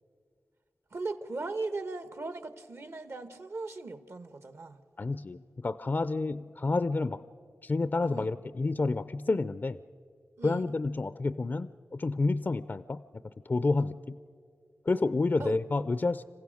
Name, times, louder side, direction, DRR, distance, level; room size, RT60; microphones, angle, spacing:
voice 1, 0.9-4.8 8.0-8.3 10.4-10.6 15.4-15.6, right 3 dB, 60° right, 1.1 m, -38 dB
voice 2, 5.0-7.2 7.6-9.8 10.4-13.0 13.5-14.2 14.8-16.2, left 3 dB, 40° left, 0.5 m, -29 dB
27.0 x 15.5 x 6.4 m
cardioid pair, 50°, 5 cm